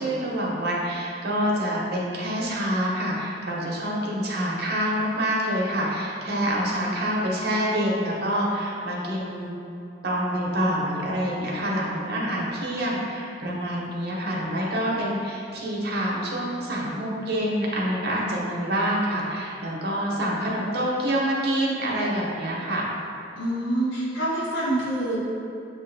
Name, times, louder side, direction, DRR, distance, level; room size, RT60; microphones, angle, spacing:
voice 1, 0.0-9.6 10.0-22.9, equal, 55° right, -4 dB, 0.7 m, -26 dB
voice 2, 23.4-25.2, right 1 dB, 85° left, -6 dB, 1.1 m, -26 dB
6.4 x 2.5 x 2.6 m, 2.8 s
head